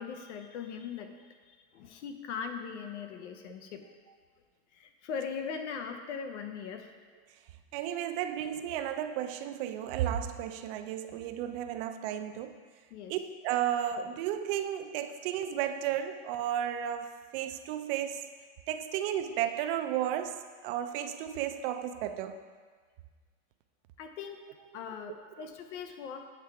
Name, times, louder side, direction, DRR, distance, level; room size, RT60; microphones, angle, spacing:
voice 1, 0.0-4.2 4.7-6.9 12.9-13.1 24.0-24.4 24.7-26.3, left 6 dB, 90° left, 6 dB, 0.8 m, -40 dB
voice 2, 7.7-12.5 13.1-18.2 18.7-22.4, right 10 dB, 55° right, 9 dB, 0.5 m, -33 dB
8.1 x 3.2 x 4.7 m, 1.5 s
supercardioid pair, 145°, 34 cm